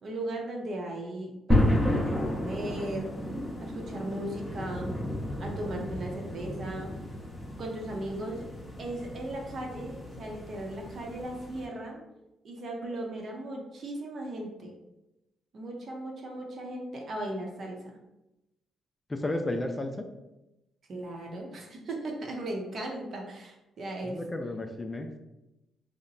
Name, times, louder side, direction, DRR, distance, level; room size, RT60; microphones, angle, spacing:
voice 1, 0.0-3.2 3.6-5.0 5.4-7.0 7.6-8.5 8.8-12.0 12.4-14.7 15.5-18.0 20.9-24.2, right 1 dB, 55° right, 1 dB, 0.7 m, -37 dB
sound 1, 1.5-11.7, left 1 dB, 5° left, 0.8 m, -32 dB
voice 2, 19.1-20.1 24.0-25.2, left 1 dB, 20° left, 5 dB, 0.3 m, -33 dB
2.8 x 2.1 x 3.9 m, 0.95 s
cardioid pair, 90°, 0 cm